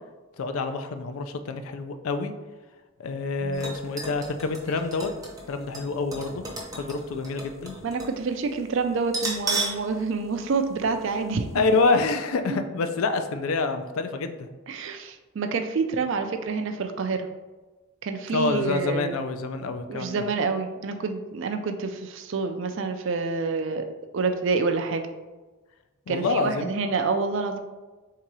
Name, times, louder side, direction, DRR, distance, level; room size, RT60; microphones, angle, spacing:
voice 1, 0.4-2.3 3.0-5.1 5.5-6.4 6.8-7.8 11.5-14.5 18.3-20.2 26.1-26.7, left 3 dB, 75° left, 8 dB, 0.4 m, -27 dB
sound 1, 3.5-8.2 8.5-8.6 9.1-9.9 10.2-10.3 11.1-11.3 11.6-11.7, right 3 dB, 15° right, 0.6 m, -34 dB
voice 2, 7.8-11.6 12.5-12.6 14.7-17.3 18.0-19.1 19.9-23.8 24.1-25.1 26.1-27.6, right 4 dB, 55° right, 6 dB, 0.4 m, -27 dB
3.7 x 2.8 x 4.6 m, 1.2 s
head